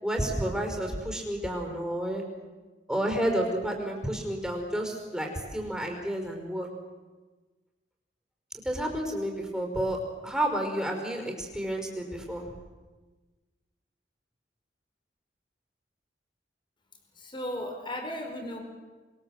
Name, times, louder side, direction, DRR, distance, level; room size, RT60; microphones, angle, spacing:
voice 1, 0.0-2.2 2.9-6.7 8.6-10.0 10.2-12.4, right 1 dB, 5° right, 2 dB, 5.1 m, -30 dB
voice 2, 17.1-18.6, left 1 dB, 30° left, 3 dB, 4.9 m, -35 dB
28.0 x 22.0 x 7.8 m, 1.3 s
head